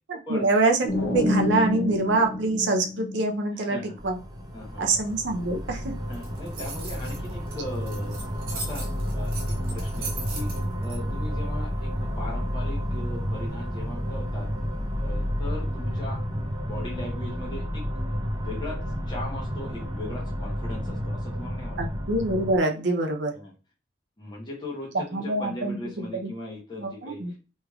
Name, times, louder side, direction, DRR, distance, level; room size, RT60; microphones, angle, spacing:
voice 1, 0.1-4.2 4.8-5.9 21.8-23.3 25.1-25.8 26.1-26.3 26.8-27.3, right 2 dB, 70° right, 3 dB, 0.5 m, -25 dB
sound 1, 0.9-3.7, left 1 dB, 60° left, 1.1 m, -28 dB
voice 2, 3.5-4.0 4.5-4.9 6.1-8.2 8.5-10.5 10.8-14.5 15.0-16.2 16.6-17.9 18.3-21.8 23.3-23.5 24.2-27.4, left 1 dB, 25° left, -3 dB, 0.9 m, -39 dB
sound 2, 4.0-22.6, equal, 20° right, 0.6 m, -31 dB
sound 3, 6.1-11.0, right 4 dB, 50° right, 1.1 m, -38 dB
3.3 x 3.1 x 2.3 m, 0.34 s
head